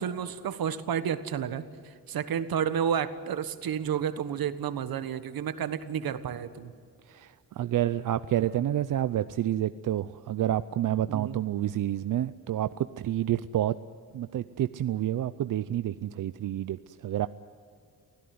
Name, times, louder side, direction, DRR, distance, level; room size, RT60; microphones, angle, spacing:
voice 1, 0.0-6.7 11.1-11.4, right 8 dB, 80° right, 12 dB, 1.4 m, -31 dB
voice 2, 7.1-13.8 14.1-17.3, right 12 dB, 60° right, 13 dB, 0.6 m, -29 dB
25.0 x 16.5 x 9.5 m, 2.3 s
wide cardioid pair, 145°, 36 cm